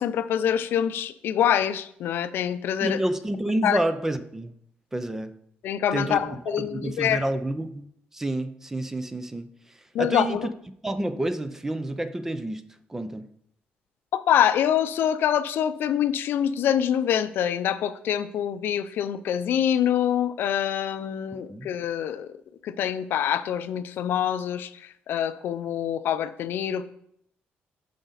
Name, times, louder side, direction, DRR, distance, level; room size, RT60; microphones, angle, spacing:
voice 1, 0.0-3.0 3.6-3.8 5.6-7.2 9.9-10.5 14.1-22.3 22.6-26.9, left 9 dB, 70° left, 12 dB, 0.5 m, -25 dB
voice 2, 2.8-4.5 4.9-5.3 5.9-7.9 8.1-9.5 10.0-10.4 10.8-13.3 21.5-21.7, right 1 dB, 10° right, 11 dB, 0.5 m, -29 dB
9.9 x 5.2 x 4.0 m, 0.71 s
cardioid pair, 140°, 4 cm